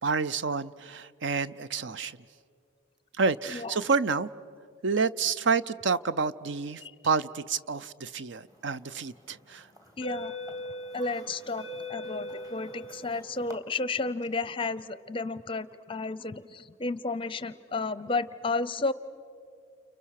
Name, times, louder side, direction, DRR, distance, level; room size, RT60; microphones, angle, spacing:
voice 1, 0.0-2.2 3.2-4.3 4.8-9.7, right 5 dB, 65° right, 0.6 m, -29 dB
sound 1, 8.7-9.0 9.7-13.5, equal, 20° right, 2.3 m, -40 dB
voice 2, 10.0-10.3 10.9-18.9, left 3 dB, 25° left, 0.6 m, -32 dB
30.0 x 29.5 x 6.5 m
head